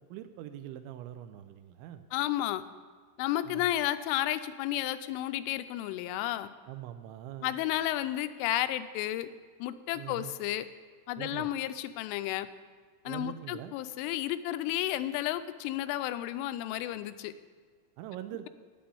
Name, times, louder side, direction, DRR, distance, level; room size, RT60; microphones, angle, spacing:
voice 1, 0.1-2.0 3.4-3.7 6.7-7.6 9.9-10.3 11.2-11.5 13.1-13.8 18.0-18.5, right 12 dB, 85° right, 10 dB, 2.8 m, -43 dB
voice 2, 2.1-2.6 3.2-6.5 7.4-9.3 9.6-10.7 11.1-12.5 13.1-17.3, left 13 dB, 85° left, 11 dB, 3.0 m, -32 dB
9.3 x 8.7 x 6.8 m, 1.5 s
omnidirectional pair, 5.5 m